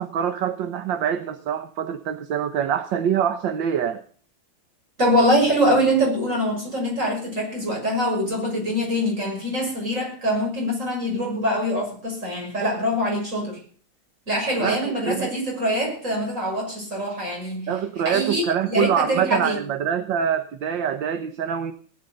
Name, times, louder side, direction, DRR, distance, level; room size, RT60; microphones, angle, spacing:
voice 1, 0.0-4.0 14.6-15.3 17.7-21.7, right 8 dB, 70° right, 1.7 m, -25 dB
voice 2, 5.0-13.6 14.3-17.8 18.0-19.6, equal, 35° right, 6.4 m, -24 dB
18.0 x 10.5 x 6.8 m
omnidirectional pair, 2.2 m